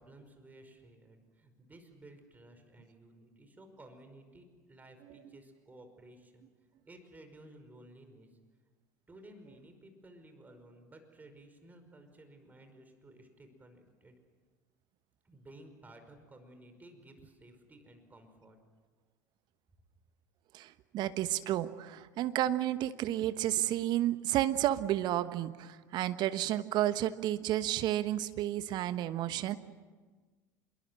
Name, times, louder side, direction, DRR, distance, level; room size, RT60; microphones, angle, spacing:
voice 1, 0.0-6.5 6.9-8.3 9.1-14.2 15.2-18.6, right 1 dB, 20° right, 7 dB, 5.3 m, -55 dB
voice 2, 20.5-29.5, right 13 dB, 50° right, 13 dB, 1.2 m, -31 dB
27.0 x 22.5 x 7.8 m, 1.4 s
figure-of-eight pair, 70°, 9 cm